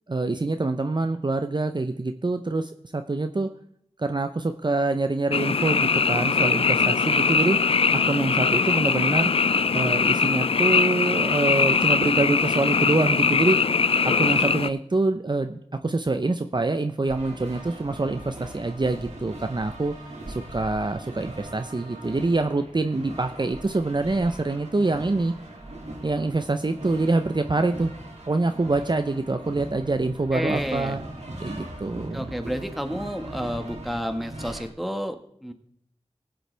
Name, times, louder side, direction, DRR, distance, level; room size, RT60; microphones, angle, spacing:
voice 1, 0.1-3.5 4.0-7.6 7.9-9.3 9.7-13.7 14.0-19.9 20.3-25.3 26.0-27.9 28.3-31.0 31.4-32.3, right 3 dB, 40° right, 7 dB, 0.7 m, -25 dB
Frog, 5.3-14.7, left 5 dB, 60° left, 0.4 m, -21 dB
sound 1, 17.1-34.6, right 1 dB, 85° right, 2.3 m, -40 dB
voice 2, 30.3-31.0 32.1-35.5, equal, ahead, 6 dB, 1.4 m, -30 dB
18.5 x 7.8 x 3.3 m, 0.70 s
wide cardioid pair, 45°, 11 cm